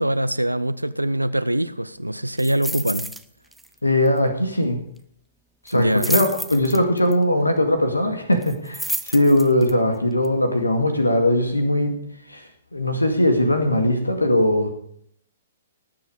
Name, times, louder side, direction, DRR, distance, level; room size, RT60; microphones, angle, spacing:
voice 1, 0.0-3.1 5.7-6.1, right 1 dB, 90° right, 0.6 m, -23 dB
sound 1, 2.4-3.2 3.5-3.8 4.1-4.2 5.7-7.1 8.4-9.7 10.2-10.3, right 1 dB, ahead, 0.6 m, -30 dB
voice 2, 3.8-4.8 5.7-12.0 12.3-14.7, left 1 dB, 85° left, 2.1 m, -20 dB
19.0 x 7.8 x 5.2 m
figure-of-eight pair, 120°, 0 cm